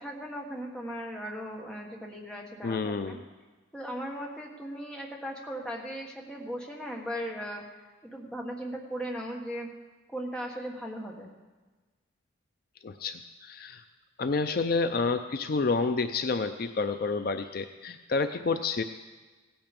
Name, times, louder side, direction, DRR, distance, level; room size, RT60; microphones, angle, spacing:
voice 1, 0.0-3.2 3.7-9.7 10.1-11.3, equal, 5° left, -1 dB, 1.4 m, -38 dB
voice 2, 2.6-3.2 12.8-13.8 14.2-18.8, left 4 dB, 50° left, 9 dB, 0.4 m, -29 dB
16.5 x 8.8 x 5.2 m, 1.3 s
head